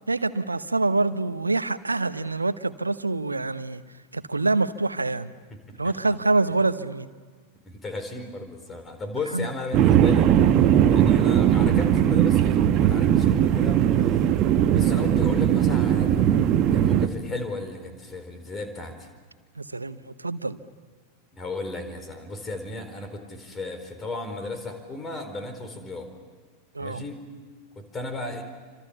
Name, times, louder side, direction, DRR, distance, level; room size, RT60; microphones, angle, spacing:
voice 1, 0.1-3.8 4.1-5.3 5.8-7.1 9.3-9.5 19.6-20.6 26.7-27.0, right 3 dB, 80° right, 14 dB, 0.9 m, -26 dB
voice 2, 5.5-5.9 7.6-10.3 10.9-14.3 14.7-16.4 16.7-19.1 21.3-26.1 26.8-27.2 27.7-28.4, left 2 dB, 20° left, 7 dB, 4.3 m, -35 dB
sound 1, 9.7-17.1, right 10 dB, 35° right, 1.2 m, -19 dB
29.0 x 26.0 x 7.1 m, 1.5 s
figure-of-eight pair, 90°, 0 cm